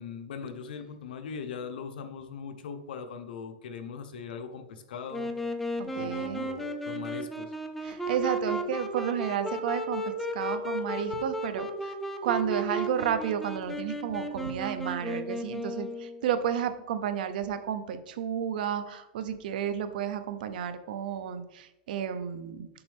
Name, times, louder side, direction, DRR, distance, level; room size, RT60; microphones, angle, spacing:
voice 1, 0.0-5.3 5.9-7.6, left 6 dB, 85° left, 7 dB, 0.9 m, -40 dB
Wind instrument woodwind instrument, 5.1-16.2, equal, 5° left, 0.5 m, -34 dB
voice 2, 5.8-6.5 7.8-11.9 12.2-22.7, right 8 dB, 75° right, 11 dB, 0.7 m, -32 dB
6.9 x 5.4 x 3.5 m, 0.92 s
supercardioid pair, 155°, 5 cm